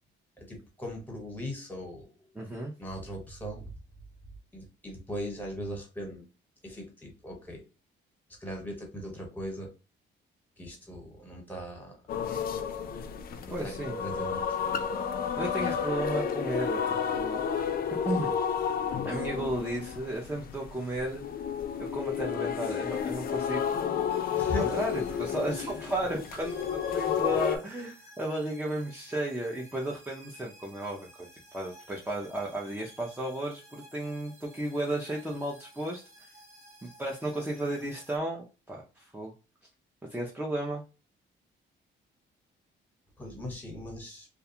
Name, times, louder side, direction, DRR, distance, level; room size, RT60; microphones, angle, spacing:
voice 1, 0.4-2.1 2.5-3.6 4.5-6.3 6.6-7.6 8.4-9.7 10.6-11.9 13.5-13.7 14.0-14.4 15.6-15.8 24.3-24.8 43.2-44.3, equal, 10° left, 1 dB, 1.2 m, -39 dB
voice 2, 2.4-2.7 13.5-14.0 15.4-17.4 18.0-18.4 19.0-21.2 21.8-23.6 24.6-31.3 31.5-36.3 36.8-39.3 40.1-40.8, right 1 dB, 10° right, -1 dB, 0.5 m, -34 dB
sound 1, 12.1-27.6, left 7 dB, 50° left, 0.4 m, -31 dB
sound 2, 24.1-38.2, equal, 35° right, 1.0 m, -54 dB
2.4 x 2.2 x 2.8 m, 0.31 s
cardioid pair, 90°, 20 cm